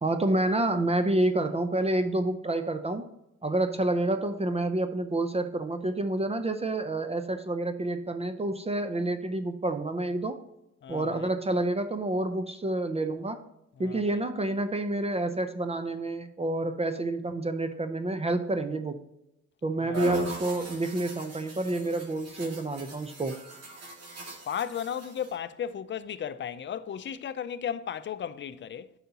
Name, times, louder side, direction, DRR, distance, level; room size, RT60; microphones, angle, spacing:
voice 1, 0.0-3.0 3.4-10.4 10.9-13.4 13.8-19.0 19.6-23.4, right 2 dB, 20° right, 0.6 m, -28 dB
voice 2, 10.8-11.3 13.8-14.2 19.8-20.2 24.5-28.9, left 8 dB, 40° left, 0.5 m, -35 dB
sound 1, 19.9-25.4, right 2 dB, 55° right, 2.1 m, -38 dB
9.1 x 5.7 x 2.8 m
cardioid pair, 90°, 30 cm